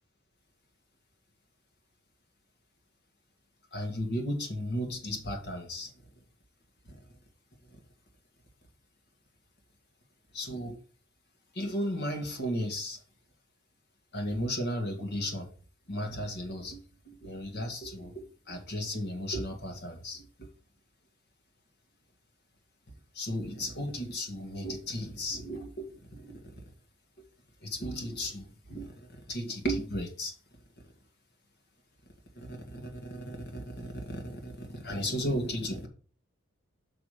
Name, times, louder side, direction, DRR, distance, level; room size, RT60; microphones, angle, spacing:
voice 1, 3.7-5.9 10.3-10.8 11.5-13.0 14.1-15.5 15.9-20.5 23.1-26.4 27.6-28.9 29.3-30.3 32.4-35.9, equal, 55° left, 1.9 m, -35 dB
6.0 x 6.0 x 4.9 m
head